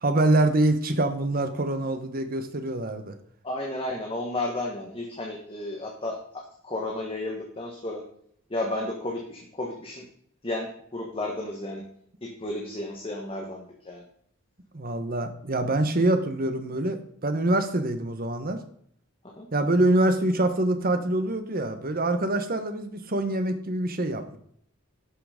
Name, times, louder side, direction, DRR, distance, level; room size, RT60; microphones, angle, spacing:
voice 1, 0.0-3.1 14.7-18.6 19.5-24.4, right 1 dB, 45° right, 8 dB, 1.2 m, -25 dB
voice 2, 3.4-8.1 8.5-10.1 10.4-11.9 12.2-14.0 19.2-19.5, left 2 dB, 25° left, 0 dB, 1.4 m, -33 dB
11.5 x 5.9 x 5.1 m, 0.65 s
head